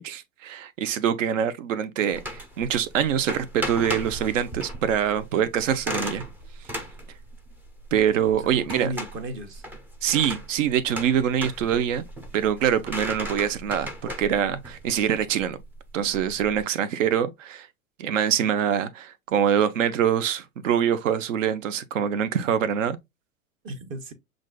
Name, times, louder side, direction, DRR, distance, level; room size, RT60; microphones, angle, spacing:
voice 1, 0.0-6.2 7.9-8.9 10.0-12.0 12.3-15.6 15.9-17.7 18.0-23.0, right 9 dB, 60° right, 0.7 m, -24 dB
sound 1, 2.1-16.6, equal, 5° right, 0.4 m, -37 dB
voice 2, 8.1-9.6 23.6-24.1, right 2 dB, 30° right, 1.0 m, -35 dB
7.1 x 2.5 x 2.2 m
figure-of-eight pair, 90°, 42 cm